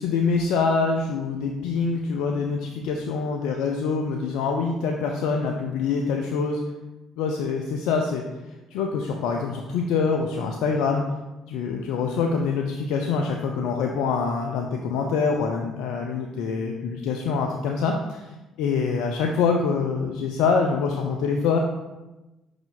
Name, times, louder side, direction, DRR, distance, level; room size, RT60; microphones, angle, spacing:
voice 1, 0.0-6.6 7.2-8.2 8.7-11.0 11.5-18.2 18.6-21.6, left 5 dB, 75° left, 2 dB, 0.5 m, -25 dB
5.3 x 4.9 x 3.9 m, 1.1 s
hypercardioid pair, 60°, 0 cm